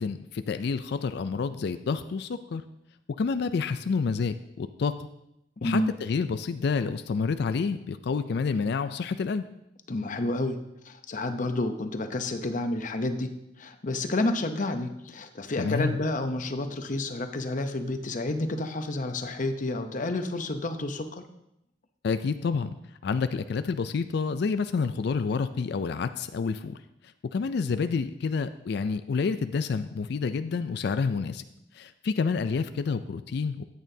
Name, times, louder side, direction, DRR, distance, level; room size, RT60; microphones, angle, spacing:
voice 1, 0.0-2.6 3.2-4.9 5.6-9.4 15.6-16.0 22.0-22.7 23.0-26.8 27.3-31.4 31.8-33.6, left 5 dB, 65° left, 11 dB, 0.4 m, -28 dB
voice 2, 5.6-5.9 9.9-10.6 10.8-13.3 13.6-21.2, left 2 dB, 45° left, 8 dB, 0.8 m, -30 dB
13.0 x 8.5 x 2.7 m, 0.83 s
head